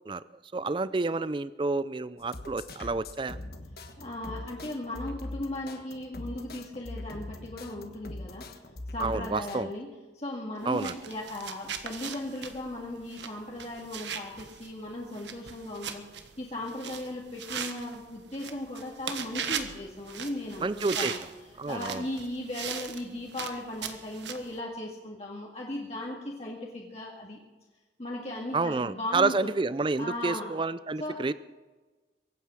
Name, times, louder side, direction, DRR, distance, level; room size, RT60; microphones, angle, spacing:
voice 1, 0.5-3.4 9.0-9.7 10.6-10.9 20.6-21.2 21.6-22.0 28.5-31.3, right 3 dB, 25° right, 16 dB, 0.4 m, -29 dB
sound 1, 2.2-9.7, left 1 dB, 55° left, 1.4 m, -42 dB
voice 2, 4.0-8.5 8.9-9.9 10.1-21.2 21.7-27.4 28.0-29.5 30.0-30.5 31.0-31.2, left 1 dB, 35° left, -2 dB, 2.0 m, -37 dB
sound 2, 10.6-24.6, right 7 dB, 85° right, 1.4 m, -39 dB
23.5 x 9.1 x 6.2 m, 1.2 s
head